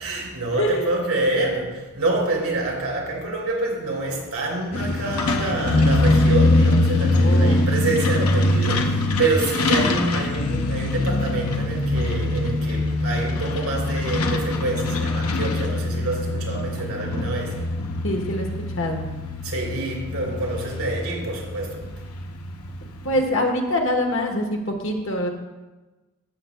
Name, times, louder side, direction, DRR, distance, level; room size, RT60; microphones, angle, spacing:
voice 1, 0.0-17.6 19.4-21.8, right 2 dB, 90° right, -1 dB, 2.8 m, -27 dB
voice 2, 0.5-0.9 7.0-7.7 18.0-18.5 18.7-19.0 22.8-25.3, left 1 dB, 60° left, 2 dB, 1.1 m, -25 dB
Truck, 4.7-23.2, left 2 dB, 85° left, 0.7 m, -23 dB
14.0 x 6.6 x 2.2 m, 1.2 s
head